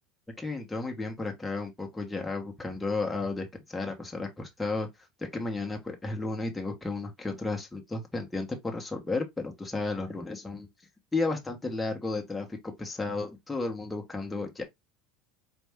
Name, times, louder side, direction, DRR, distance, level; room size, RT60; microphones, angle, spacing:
voice 1, 0.4-4.9 5.3-10.7 11.1-14.6, left 3 dB, 5° left, 1.0 m, -33 dB
4.3 x 2.6 x 3.4 m
supercardioid pair, 150°, 0 cm